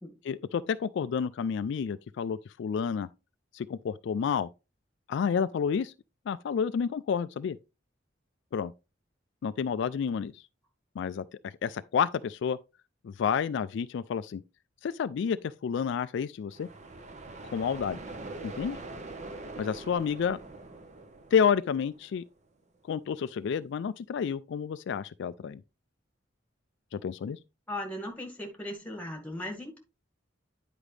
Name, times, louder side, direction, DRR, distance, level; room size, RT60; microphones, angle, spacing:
voice 1, 0.3-3.1 3.5-4.5 5.1-5.9 6.3-7.6 8.5-8.7 9.4-10.4 11.0-11.2 11.6-12.6 13.0-14.4 14.8-16.7 17.4-18.0 18.4-18.8 19.6-20.4 21.3-22.2 22.9-25.6 26.9-27.4, left 7 dB, 65° left, 0.3 m, -30 dB
sound 1, 16.5-22.3, right 2 dB, 40° right, 1.1 m, -43 dB
voice 2, 27.7-29.8, left 1 dB, 10° left, 2.0 m, -38 dB
9.9 x 5.0 x 3.2 m
head